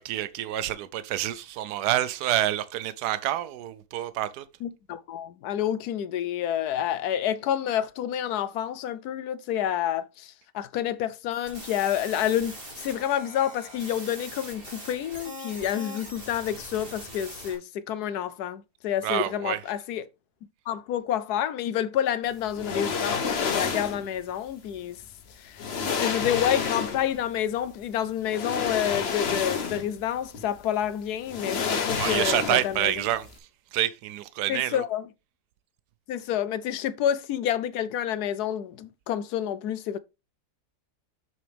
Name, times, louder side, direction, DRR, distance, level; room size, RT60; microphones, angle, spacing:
voice 1, 0.0-4.4 19.0-19.6 31.9-33.3 33.7-34.8, right 13 dB, 85° right, 1.2 m, -28 dB
voice 2, 4.6-20.0 20.7-25.0 25.4-32.9 34.5-35.1 36.1-40.0, left 10 dB, 80° left, 1.2 m, -29 dB
sound 1, 11.3-17.5, equal, 35° right, 3.0 m, -42 dB
sound 2, 22.5-24.1 25.1-25.2 25.6-27.2 28.3-30.0 30.3-30.5 31.3-32.9 33.1-33.3, left 5 dB, 45° left, 1.1 m, -29 dB
7.0 x 6.3 x 3.4 m
omnidirectional pair, 1.7 m